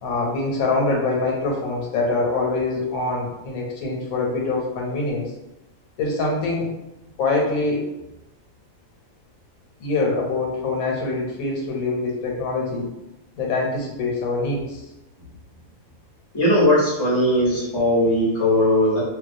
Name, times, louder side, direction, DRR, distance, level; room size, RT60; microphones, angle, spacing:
voice 1, 0.0-5.3 6.0-6.7 7.2-7.9 9.8-12.9 13.4-14.8, left 3 dB, 85° left, -1 dB, 1.0 m, -24 dB
voice 2, 16.3-19.0, left 1 dB, 35° left, -6 dB, 0.4 m, -19 dB
2.2 x 2.2 x 2.5 m, 0.93 s
omnidirectional pair, 1.5 m